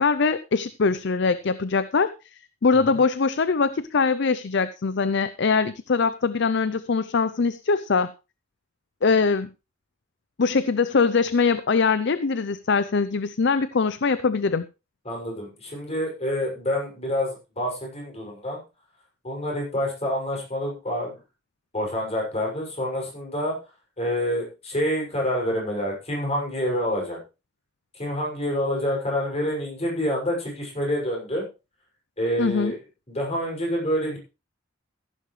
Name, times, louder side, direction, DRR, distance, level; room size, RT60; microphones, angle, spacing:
voice 1, 0.0-2.1 2.6-8.1 9.0-9.5 10.4-14.7 32.4-32.7, left 4 dB, 60° left, 14 dB, 0.5 m, -22 dB
voice 2, 15.0-18.6 19.2-21.2 21.7-23.6 24.0-27.2 27.9-31.5 32.2-32.8 33.1-34.2, equal, 30° left, -1 dB, 6.3 m, -27 dB
15.0 x 11.5 x 3.2 m, 0.29 s
head